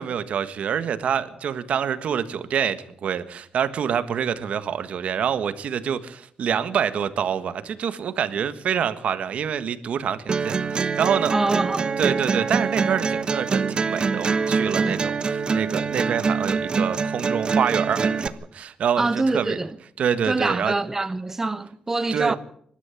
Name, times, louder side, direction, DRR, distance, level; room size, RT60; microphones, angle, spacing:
voice 1, 0.0-19.6 20.0-20.7 22.1-22.4, right 8 dB, 75° right, 1.6 m, -26 dB
sound 1, 10.3-18.3, right 5 dB, 45° right, 1.1 m, -24 dB
voice 2, 11.3-11.9 14.8-15.0 19.0-19.8 20.3-22.4, right 2 dB, 20° right, 0.8 m, -25 dB
25.5 x 12.5 x 8.4 m
cardioid pair, 115°, 2 cm